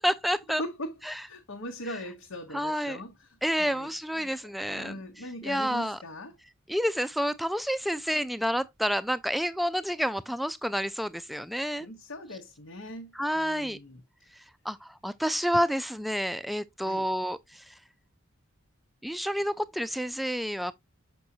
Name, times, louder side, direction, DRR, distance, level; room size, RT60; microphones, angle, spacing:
voice 1, 0.0-0.6 1.1-1.2 2.5-3.0 3.4-4.9 5.4-6.0 6.7-11.9 13.2-13.8 14.7-17.6 19.0-20.7, equal, ahead, 0.3 m, -29 dB
voice 2, 0.6-1.0 1.3-4.3 4.7-6.3 11.8-14.0 16.8-17.1, left 1 dB, 80° left, 1.1 m, -40 dB
6.3 x 6.1 x 2.7 m
head